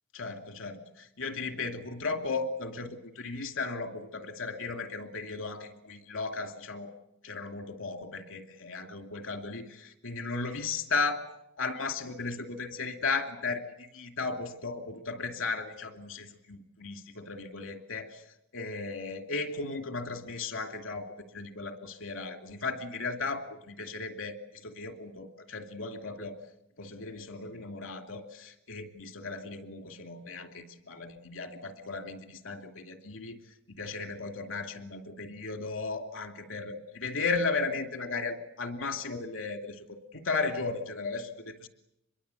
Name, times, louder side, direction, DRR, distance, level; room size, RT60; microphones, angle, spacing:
voice 1, 0.1-6.9 7.2-11.2 11.6-18.2 18.5-21.1 21.3-24.4 24.6-26.4 26.8-33.4 33.7-41.7, left 4 dB, 75° left, 6 dB, 2.7 m, -35 dB
26.0 x 22.0 x 8.2 m, 0.81 s
head